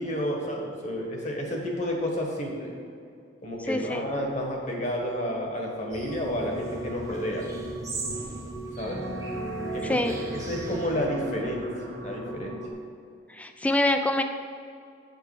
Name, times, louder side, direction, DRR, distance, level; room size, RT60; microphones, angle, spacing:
voice 1, 0.0-2.7 3.4-7.5 8.7-9.0 9.7-10.0 10.3-12.6, equal, 40° left, 0 dB, 1.5 m, -30 dB
voice 2, 3.7-4.0 9.8-10.2 13.3-14.2, left 1 dB, 5° left, 7 dB, 0.4 m, -25 dB
sound 1, 5.9-11.0, right 2 dB, 15° right, 0.8 m, -40 dB
sound 2, 6.0-12.7, right 2 dB, 80° right, 1.3 m, -37 dB
7.8 x 6.7 x 4.9 m, 2.4 s
head